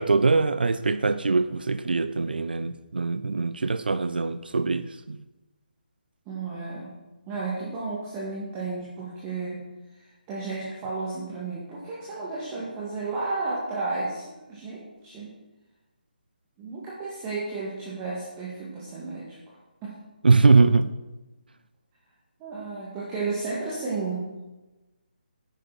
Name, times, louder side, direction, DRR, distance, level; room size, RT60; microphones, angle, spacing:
voice 1, 0.0-5.2 20.2-20.9, right 4 dB, 70° right, 0.5 m, -22 dB
voice 2, 6.3-6.9 7.3-9.6 10.0-15.3 16.6-19.6 19.8-20.0 22.4-24.2, right 3 dB, 20° right, 2.0 m, -33 dB
10.5 x 7.5 x 4.2 m
figure-of-eight pair, 150°, 5 cm